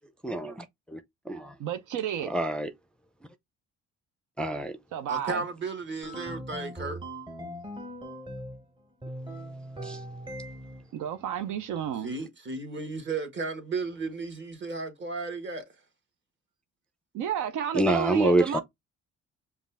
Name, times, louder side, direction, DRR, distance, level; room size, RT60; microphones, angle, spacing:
voice 1, 0.2-1.0 1.3-1.5 2.2-2.7 4.4-4.7 9.8-10.0 17.7-18.6, right 1 dB, 5° left, 0.5 m, -26 dB
voice 2, 1.6-2.3 4.9-5.4 10.9-12.1 17.1-18.6, right 8 dB, 80° right, 0.6 m, -31 dB
voice 3, 5.1-7.0 12.0-15.6, right 3 dB, 40° right, 1.6 m, -34 dB
sound 1, 6.0-8.6 9.0-10.9, right 1 dB, 15° right, 0.9 m, -40 dB
5.2 x 2.4 x 3.4 m
cardioid pair, 90°, 30 cm